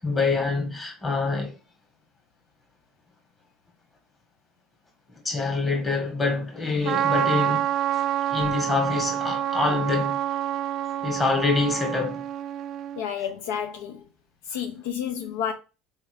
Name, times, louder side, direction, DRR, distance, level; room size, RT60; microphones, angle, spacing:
voice 1, 0.0-1.5 5.2-7.7 8.3-10.2 11.0-12.2, left 3 dB, 25° left, 2.1 m, -25 dB
Trumpet, 6.8-13.0, right 11 dB, 50° right, 0.4 m, -27 dB
voice 2, 13.0-14.1 14.5-15.5, left 8 dB, 90° left, 0.6 m, -30 dB
4.4 x 3.4 x 3.4 m
supercardioid pair, 105°, 0 cm